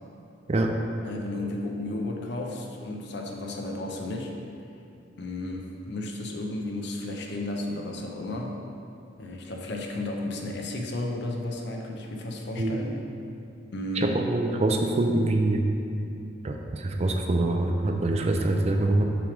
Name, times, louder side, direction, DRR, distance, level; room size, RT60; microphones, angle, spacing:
voice 1, 1.0-4.3 5.2-8.5 9.2-12.9 13.7-14.1, left 2 dB, 65° left, 1 dB, 0.7 m, -33 dB
voice 2, 14.0-15.7 16.4-19.0, right 2 dB, 35° right, 3 dB, 0.4 m, -24 dB
6.0 x 3.4 x 5.0 m, 2.6 s
head